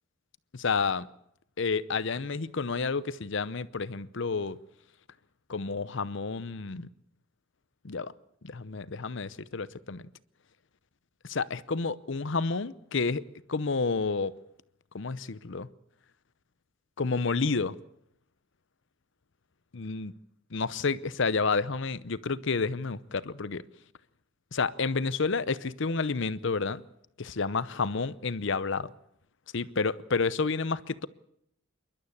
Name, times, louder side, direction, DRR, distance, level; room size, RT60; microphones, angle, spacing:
voice 1, 0.5-1.1 1.6-4.6 5.5-6.9 7.8-8.1 8.4-10.0 11.2-13.2 13.5-14.3 14.9-15.7 17.0-17.8 19.7-20.1 20.5-23.6 24.5-26.8 27.2-28.9 29.5-31.1, left 4 dB, 65° left, 0.8 m, -30 dB
27.5 x 12.0 x 8.6 m
head